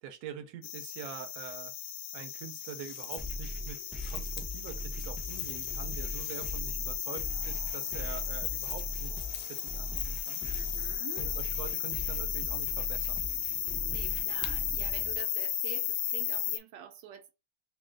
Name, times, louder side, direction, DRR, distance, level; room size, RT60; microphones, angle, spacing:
voice 1, 0.0-1.7 2.1-3.8 4.1-10.5 11.2-13.2, right 8 dB, 65° right, 1.1 m, -45 dB
sound 1, 0.6-16.6, left 10 dB, 75° left, 1.1 m, -35 dB
sound 2, 3.2-15.2, equal, ahead, 0.4 m, -40 dB
voice 2, 10.4-11.3 13.8-17.3, right 9 dB, 85° right, 1.4 m, -47 dB
3.2 x 2.7 x 3.8 m
omnidirectional pair, 1.9 m